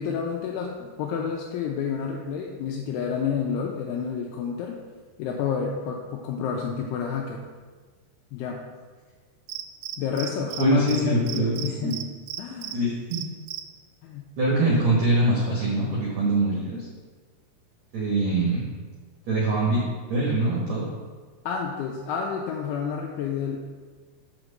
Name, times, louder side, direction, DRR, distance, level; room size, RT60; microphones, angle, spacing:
voice 1, 0.0-4.8 5.2-7.5 8.3-8.6 10.0-12.0 12.4-12.8 14.0-14.3 14.6-14.7 21.5-23.6, left 7 dB, 80° left, 0 dB, 2.5 m, -29 dB
Cricket, 9.5-10.6 10.9-11.0 11.3-12.7 13.1-13.6, right 13 dB, 85° right, 2.2 m, -34 dB
voice 2, 10.6-12.1 12.7-13.2 14.4-16.9 17.9-18.6 19.3-20.9, right 2 dB, 65° right, -4 dB, 1.9 m, -24 dB
6.0 x 5.1 x 6.5 m, 1.5 s
omnidirectional pair, 4.9 m